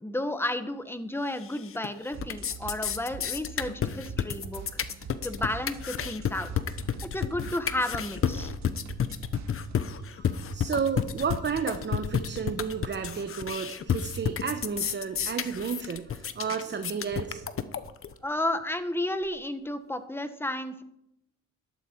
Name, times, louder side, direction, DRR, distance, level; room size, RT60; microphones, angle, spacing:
voice 1, 0.0-4.6 5.2-6.5 7.1-8.5 18.2-20.8, left 1 dB, 10° left, 9 dB, 1.4 m, -32 dB
sound 1, 1.4-1.9 2.1-18.1, left 8 dB, 45° left, 1.0 m, -31 dB
sound 2, 2.1-9.8, right 5 dB, 65° right, 1.9 m, -44 dB
voice 2, 10.1-17.6, right 6 dB, 35° right, 8 dB, 1.0 m, -32 dB
12.5 x 12.0 x 4.6 m, 0.80 s
cardioid pair, 90°, 30 cm